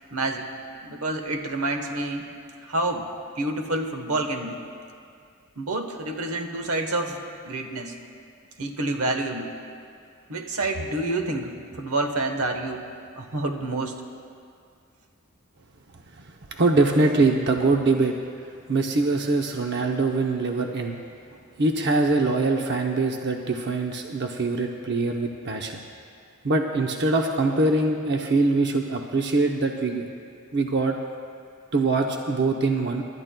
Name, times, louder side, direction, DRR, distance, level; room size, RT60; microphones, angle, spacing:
voice 1, 0.1-0.5 0.8-2.3 2.6-3.1 3.4-4.6 5.6-8.0 8.6-9.5 10.3-12.9 13.1-14.0, right 2 dB, 85° right, 5 dB, 1.1 m, -28 dB
voice 2, 16.2-18.1 18.7-21.0 21.6-25.8 26.4-30.1 30.5-31.0 31.7-33.0, right 3 dB, 55° right, 2 dB, 0.7 m, -23 dB
28.5 x 12.0 x 2.2 m, 2.3 s
head